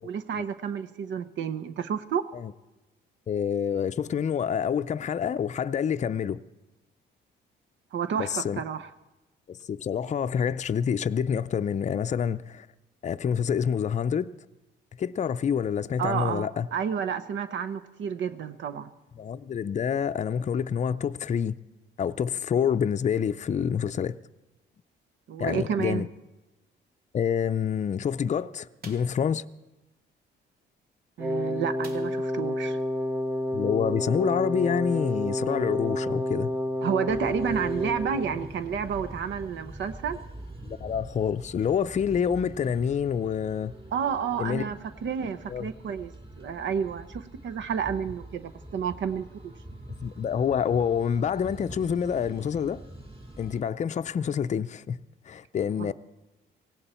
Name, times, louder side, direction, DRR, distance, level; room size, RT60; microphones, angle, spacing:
voice 1, 0.0-2.2 7.9-8.9 16.0-18.9 25.3-26.0 31.2-32.8 36.8-40.2 43.9-46.1 46.4-49.3 55.8-55.9, right 7 dB, 70° right, 0.9 m, -30 dB
voice 2, 3.3-6.4 8.2-8.6 9.5-12.7 13.0-14.3 15.0-16.7 19.2-21.6 22.0-24.2 25.4-26.1 27.1-29.4 33.5-36.5 40.6-43.7 44.4-44.7 45.5-45.7 50.0-52.8 53.4-55.0 55.3-55.9, left 7 dB, 35° left, 0.5 m, -27 dB
sound 1, 28.8-29.2 31.8-32.4 32.8-32.9 33.3-33.4, right 3 dB, 50° right, 2.3 m, -48 dB
Wind instrument woodwind instrument, 31.2-38.5, left 1 dB, 10° right, 0.9 m, -30 dB
sound 2, 37.1-53.6, right 1 dB, 30° right, 3.3 m, -44 dB
18.0 x 16.5 x 4.3 m
cardioid pair, 90°, 20 cm